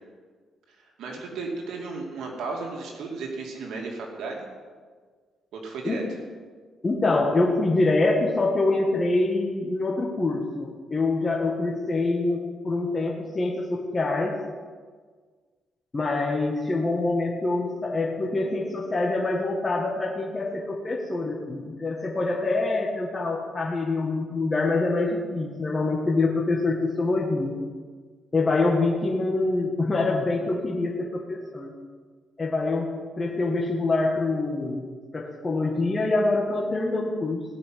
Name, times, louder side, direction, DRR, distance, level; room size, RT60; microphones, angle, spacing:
voice 1, 0.7-4.5 5.5-6.0, right 3 dB, 80° right, 0 dB, 2.5 m, -34 dB
voice 2, 6.8-14.4 15.9-27.5 28.3-31.7 32.4-34.8 35.1-37.4, left 2 dB, 25° left, -2 dB, 1.8 m, -25 dB
18.0 x 6.1 x 9.4 m, 1.6 s
cardioid pair, 110°, 0 cm